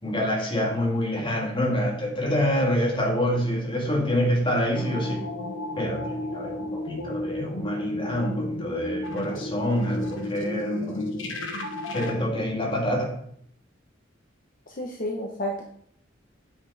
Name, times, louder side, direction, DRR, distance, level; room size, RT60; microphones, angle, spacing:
voice 1, 0.0-5.3 5.8-11.4 11.9-13.2, equal, 25° left, -1 dB, 2.0 m, -26 dB
sound 1, 4.7-12.1, left 1 dB, 85° left, 1.3 m, -33 dB
voice 2, 14.7-15.6, equal, 45° left, 0 dB, 1.0 m, -31 dB
9.0 x 6.1 x 4.1 m, 0.66 s
head